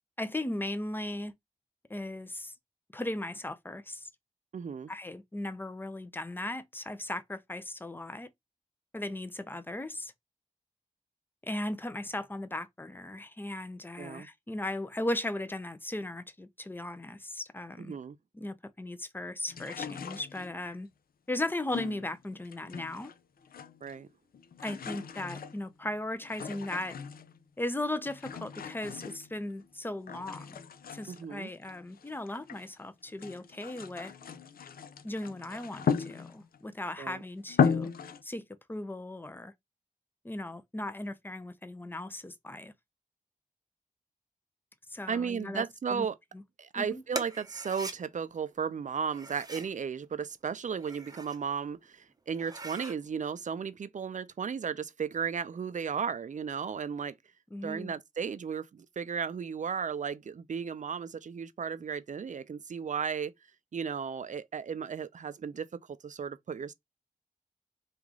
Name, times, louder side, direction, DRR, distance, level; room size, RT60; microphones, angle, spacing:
voice 1, 0.2-1.3 1.9-2.5 2.9-4.1 4.9-8.3 8.9-10.1 11.4-17.9 18.3-20.9 21.3-23.1 24.6-27.0 27.6-30.6 30.9-34.1 35.0-37.9 38.2-39.5 40.2-42.7 44.9-45.6 45.9-46.1 46.3-46.4 46.8-47.0 57.5-57.9, left 1 dB, 15° left, 0.6 m, -37 dB
voice 2, 4.5-4.9 14.0-14.3 17.8-18.2 23.8-24.1 31.1-31.5 37.0-37.2 45.1-46.2 46.6-57.2 57.6-63.3 63.7-66.7, right 6 dB, 55° right, 0.4 m, -35 dB
sound 1, 19.5-20.8 21.7-23.2 23.4-24.0 24.3-27.4 28.1-29.7 30.1-32.7 33.1-36.6 37.1-37.2 37.5-38.2, left 7 dB, 85° left, 0.4 m, -35 dB
sound 2, 47.1-48.0 49.1-49.7 50.6-51.4 51.8-51.9 52.3-53.0, right 2 dB, 25° right, 0.7 m, -41 dB
3.0 x 2.5 x 3.6 m
cardioid pair, 45°, 15 cm